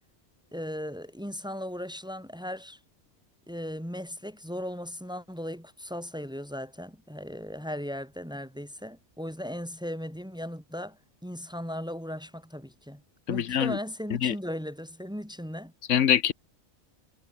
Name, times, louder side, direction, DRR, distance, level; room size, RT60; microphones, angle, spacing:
voice 1, 0.5-2.8 3.5-13.0 13.3-15.7, equal, 5° right, 5.8 m, -37 dB
voice 2, 13.3-13.8 14.2-14.3 15.9-16.3, left 9 dB, 80° left, 1.3 m, -24 dB
omnidirectional pair, 1.3 m